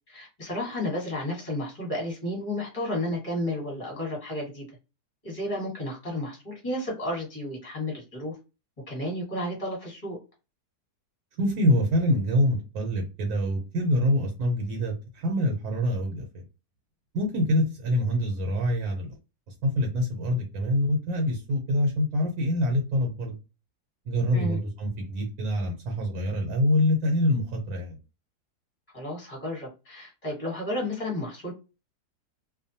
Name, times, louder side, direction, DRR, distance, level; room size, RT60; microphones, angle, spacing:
voice 1, 0.1-4.6 5.2-8.3 8.9-10.2 24.3-24.6 28.9-31.5, left 1 dB, 25° left, -2 dB, 1.2 m, -32 dB
voice 2, 11.4-16.4 17.1-19.1 19.6-23.4 24.1-28.0, left 1 dB, 75° right, 2 dB, 1.1 m, -25 dB
2.6 x 2.2 x 2.7 m, 0.30 s
omnidirectional pair, 1.7 m